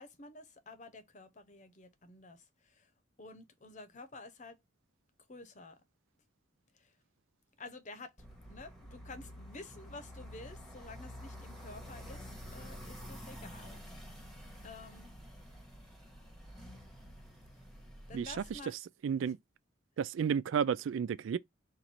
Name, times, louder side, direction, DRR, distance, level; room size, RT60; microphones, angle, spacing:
voice 1, 0.0-2.9 3.2-4.6 5.3-5.8 6.7-6.9 7.6-8.1 8.5-13.8 14.6-15.1 18.1-18.8 19.2-19.3, left 3 dB, 40° left, 0.8 m, -50 dB
sound 1, 8.2-18.6, equal, ahead, 1.1 m, -49 dB
voice 2, 19.0-19.4 20.0-21.4, right 7 dB, 75° right, 0.3 m, -31 dB
4.5 x 2.6 x 4.2 m
head